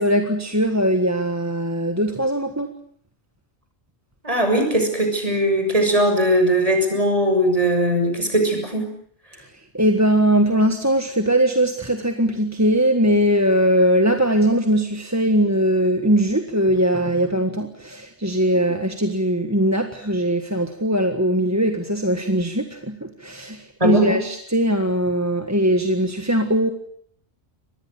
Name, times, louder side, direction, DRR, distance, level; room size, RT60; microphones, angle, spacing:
voice 1, 0.0-2.7 9.5-26.7, equal, 15° right, 6 dB, 1.6 m, -20 dB
voice 2, 4.2-8.9 23.8-24.2, right 1 dB, 30° right, 5 dB, 7.0 m, -19 dB
25.5 x 20.5 x 8.4 m, 0.64 s
omnidirectional pair, 1.1 m